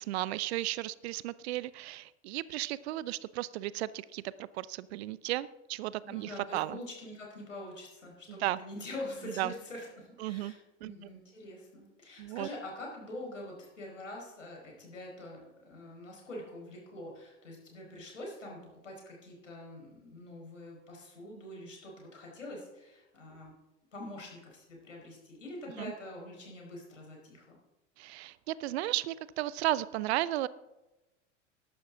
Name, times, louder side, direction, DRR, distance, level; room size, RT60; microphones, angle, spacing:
voice 1, 0.0-6.8 8.3-8.6 9.4-9.5 10.2-10.5 10.8-10.9 12.2-12.5 25.8-25.9 28.0-30.5, right 15 dB, 60° right, 19 dB, 0.6 m, -34 dB
voice 2, 6.0-10.6 10.8-23.5 23.9-27.6, left 1 dB, 85° left, -1 dB, 4.9 m, -45 dB
14.0 x 11.5 x 3.7 m, 1.0 s
figure-of-eight pair, 85°, 37 cm